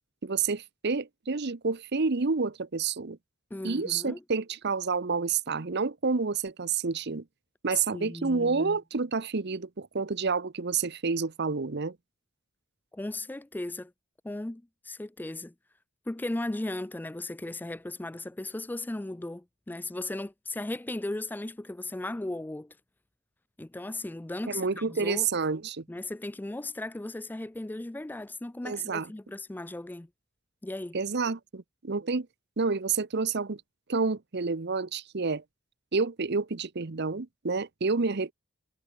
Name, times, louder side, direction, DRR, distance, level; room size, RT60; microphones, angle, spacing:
voice 1, 0.2-3.2 3.6-7.2 7.6-12.0 24.5-25.8 28.6-29.1 30.9-32.3 32.6-33.6 33.9-35.4 35.9-38.3, right 4 dB, 55° right, 0.9 m, -29 dB
voice 2, 3.5-4.2 7.7-8.8 12.9-13.9 14.2-15.5 16.1-22.8 23.6-25.3 25.9-30.1 30.6-31.0, left 2 dB, 10° left, 0.4 m, -36 dB
head